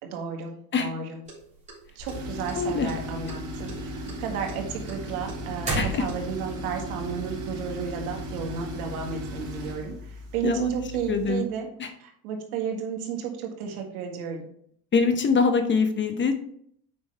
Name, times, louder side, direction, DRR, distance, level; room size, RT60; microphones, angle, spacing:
voice 1, 0.1-0.5 0.8-1.2 2.0-14.5, right 6 dB, 85° right, 2 dB, 1.8 m, -33 dB
sound 1, 1.3-2.5 2.9-3.4 3.7-6.5, right 2 dB, 15° right, 3.1 m, -33 dB
Tools, 2.0-11.5, equal, 45° right, 2.8 m, -37 dB
voice 2, 2.6-2.9 5.7-6.0 10.4-10.7 11.1-11.4 11.8-11.9 14.9-16.3, left 5 dB, 25° left, 8 dB, 0.8 m, -23 dB
8.0 x 5.4 x 3.3 m, 0.64 s
supercardioid pair, 125°, 42 cm